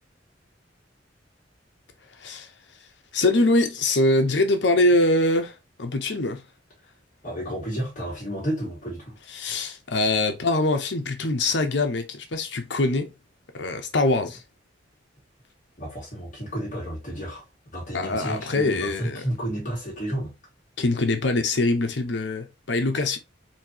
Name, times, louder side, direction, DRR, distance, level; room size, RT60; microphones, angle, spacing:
voice 1, 3.1-5.5 5.8-6.4 9.3-13.1 13.5-14.4 17.9-19.2 20.8-23.2, left 2 dB, 65° left, 0.8 m, -23 dB
voice 2, 7.2-9.2 15.8-17.4 17.7-20.3, equal, 45° left, 1.6 m, -31 dB
4.4 x 2.8 x 2.8 m
head